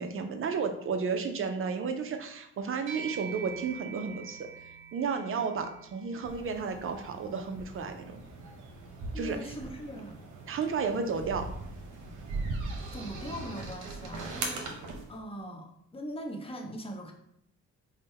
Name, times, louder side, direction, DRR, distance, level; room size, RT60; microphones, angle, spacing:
voice 1, 0.0-4.4 4.9-8.2 9.1-9.4 10.5-11.4, right 5 dB, 45° right, 6 dB, 0.5 m, -32 dB
sound 1, 2.9-12.5, right 6 dB, 65° right, 1.5 m, -48 dB
sound 2, 6.2-15.1, right 3 dB, 85° right, 0.8 m, -40 dB
voice 2, 9.1-10.2 10.9-11.1 12.9-14.6 15.1-17.1, equal, 20° left, 2 dB, 0.7 m, -40 dB
3.6 x 2.1 x 4.2 m, 0.72 s
cardioid pair, 90°, 30 cm